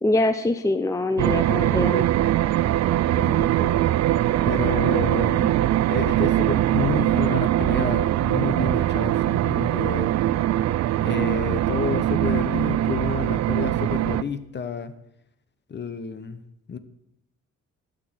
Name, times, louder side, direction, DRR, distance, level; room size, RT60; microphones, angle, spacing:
voice 1, 0.0-2.0, left 2 dB, 10° left, 10 dB, 0.6 m, -23 dB
sound 1, 1.2-14.2, right 13 dB, 60° right, 0.5 m, -22 dB
voice 2, 3.1-3.8 4.4-10.1 11.0-14.9 15.7-16.4 16.7-16.8, left 6 dB, 35° left, 13 dB, 1.0 m, -30 dB
11.5 x 6.6 x 7.8 m, 0.83 s
cardioid pair, 90°, 30 cm